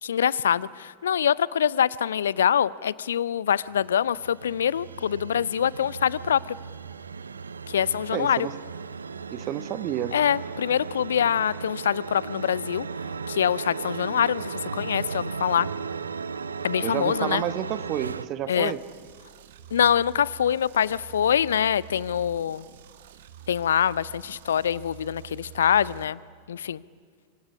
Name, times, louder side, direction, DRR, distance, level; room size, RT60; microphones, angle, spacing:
voice 1, 0.0-6.6 7.7-8.5 10.1-12.9 13.3-15.7 16.6-17.4 18.5-18.7 19.7-22.7 23.5-26.2 26.5-26.8, left 9 dB, 65° left, 22 dB, 0.6 m, -24 dB
sound 1, 3.6-18.3, right 5 dB, 75° right, 0.8 m, -36 dB
voice 2, 8.1-8.5 9.3-10.2 16.8-18.8, right 12 dB, 35° right, 14 dB, 1.2 m, -30 dB
sound 2, 18.7-26.1, right 12 dB, 55° right, 1.6 m, -47 dB
25.5 x 25.0 x 8.5 m, 2.1 s
figure-of-eight pair, 90°, 0 cm